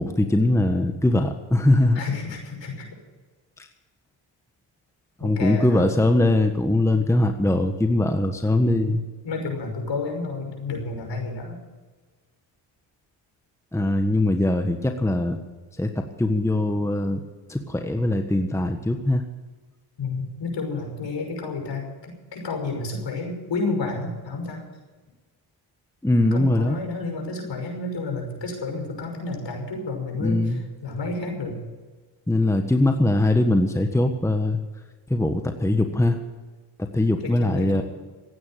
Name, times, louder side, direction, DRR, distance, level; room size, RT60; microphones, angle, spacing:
voice 1, 0.0-2.0 5.2-9.0 13.7-15.4 15.8-17.2 17.5-19.2 26.0-26.8 30.2-30.6 32.3-34.6 35.1-36.2 36.8-37.8, left 1 dB, 5° left, 6 dB, 1.4 m, -21 dB
voice 2, 1.9-2.9 5.2-5.9 8.6-8.9 9.2-11.6 20.0-24.6 26.3-30.5 30.8-31.6 37.2-37.8, left 3 dB, 60° left, 2 dB, 6.0 m, -30 dB
16.0 x 9.5 x 9.1 m, 1.3 s
cardioid pair, 65°, 49 cm